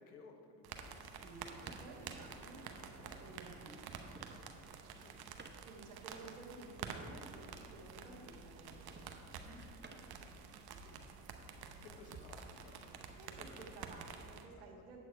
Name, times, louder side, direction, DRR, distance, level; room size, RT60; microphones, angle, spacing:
voice 1, 0.0-1.5 5.0-5.2 9.0-10.5 11.8-13.0 13.4-14.0 14.8-14.9, left 4 dB, 75° left, 4 dB, 1.2 m, -59 dB
sound 1, 0.6-14.5, right 6 dB, 55° right, 1.0 m, -50 dB
voice 2, 1.0-4.1 5.7-9.7 10.8-11.0 13.2-15.0, right 2 dB, 70° right, 0 dB, 1.8 m, -54 dB
sound 2, 1.2-10.2, right 3 dB, 25° right, 0.9 m, -61 dB
9.1 x 7.7 x 4.5 m, 2.4 s
hypercardioid pair, 55°, 44 cm